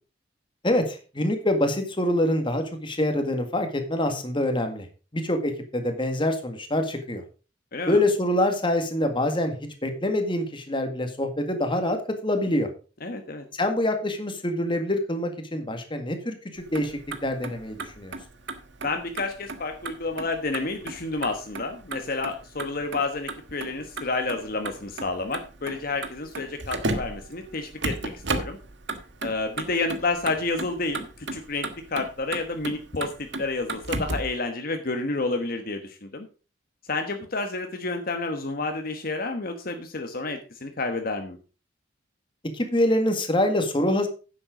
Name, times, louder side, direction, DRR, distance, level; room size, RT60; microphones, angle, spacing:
voice 1, 0.6-4.9 5.1-7.2 7.9-9.6 9.8-12.0 12.2-12.7 13.5-18.2 42.4-44.1, left 1 dB, 25° left, 6 dB, 1.8 m, -25 dB
voice 2, 7.7-8.0 13.0-13.4 18.8-28.6 29.2-33.1 33.4-36.3 36.9-41.4, left 3 dB, 50° left, 5 dB, 1.2 m, -30 dB
Motor vehicle (road), 16.6-34.4, right 2 dB, 70° right, 1.5 m, -35 dB
10.0 x 7.7 x 5.1 m, 0.35 s
head